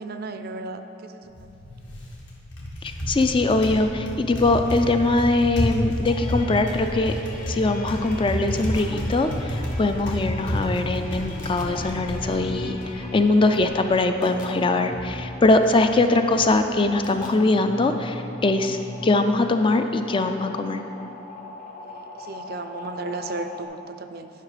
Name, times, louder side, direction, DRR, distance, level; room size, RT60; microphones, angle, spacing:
voice 1, 0.0-1.5 21.8-24.3, right 3 dB, 50° right, 8 dB, 0.5 m, -35 dB
Typing, 1.2-13.7, equal, 60° left, 1.7 m, -30 dB
voice 2, 2.8-7.1 7.5-20.8, left 2 dB, 25° left, 7 dB, 0.4 m, -22 dB
sound 1, 6.1-23.7, left 1 dB, 45° left, 0.9 m, -38 dB
11.0 x 5.7 x 5.0 m, 2.8 s
head